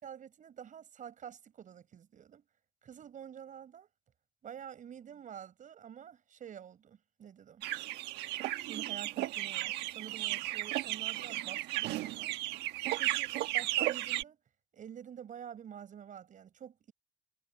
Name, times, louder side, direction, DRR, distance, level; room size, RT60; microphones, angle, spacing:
voice 1, 0.0-2.5 2.8-3.9 4.4-7.6 8.7-12.7 12.9-14.4 14.7-16.9, right 8 dB, 50° right, 7.2 m, -48 dB
sound 1, 7.6-14.2, right 16 dB, 90° right, 1.3 m, -34 dB
cardioid pair, 110°, 17 cm